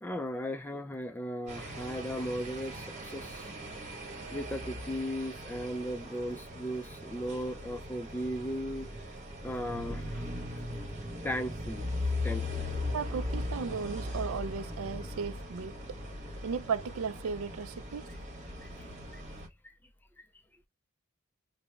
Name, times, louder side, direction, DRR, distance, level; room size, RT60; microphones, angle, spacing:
voice 1, 0.0-3.5 4.3-8.9 9.4-10.2 11.2-11.9 12.2-12.6 18.6-19.2 19.6-19.7, equal, 10° left, 0.3 m, -37 dB
sound 1, 1.5-19.5, left 1 dB, 35° right, 1.2 m, -39 dB
voice 2, 12.9-15.8 16.4-18.1, right 5 dB, 90° right, 0.4 m, -35 dB
5.0 x 2.1 x 2.3 m
head